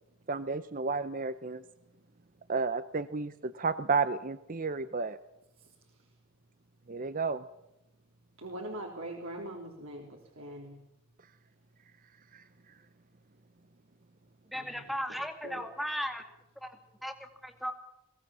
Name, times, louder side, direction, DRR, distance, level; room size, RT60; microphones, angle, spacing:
voice 1, 0.3-1.6 2.5-5.2 6.9-7.4 12.3-12.4, right 4 dB, 40° right, 13 dB, 0.7 m, -32 dB
voice 2, 5.6-6.0 8.4-10.8 14.5-15.6, right 1 dB, 70° right, -1 dB, 3.5 m, -43 dB
voice 3, 14.5-16.2 16.6-16.8 17.0-17.1 17.4-17.7, equal, ahead, 6 dB, 2.3 m, -36 dB
22.0 x 17.5 x 7.4 m, 0.88 s
head